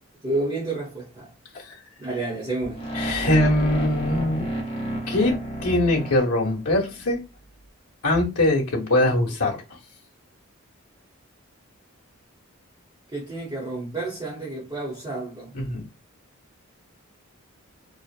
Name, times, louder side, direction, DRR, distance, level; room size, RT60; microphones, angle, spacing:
voice 1, 0.2-1.3 2.0-2.9 13.1-15.5, right 2 dB, 20° right, 0.7 m, -30 dB
sound 1, 2.7-6.8, right 1 dB, 25° left, 0.6 m, -31 dB
voice 2, 3.0-4.5 5.1-5.4 5.6-7.2 8.0-9.6 15.5-15.8, left 1 dB, 90° left, 0.8 m, -22 dB
2.6 x 2.0 x 2.3 m
head